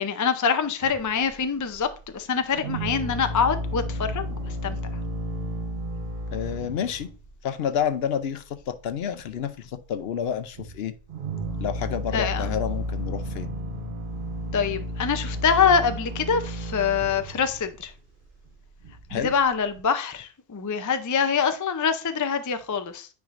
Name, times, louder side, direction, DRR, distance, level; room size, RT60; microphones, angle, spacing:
voice 1, 0.0-1.9 2.1-4.8 12.1-12.5 14.5-17.9 19.1-23.1, left 6 dB, 30° left, 0.3 m, -25 dB
sound 1, 0.8-2.2 2.4-7.4 7.7-8.1 8.4-9.0 9.2-10.0 10.2-19.8, equal, 55° right, 1.0 m, -33 dB
voice 2, 6.3-7.1 7.4-10.9 11.6-13.5 19.1-19.3, left 8 dB, 70° left, 0.8 m, -29 dB
9.5 x 4.7 x 2.5 m
omnidirectional pair, 1.1 m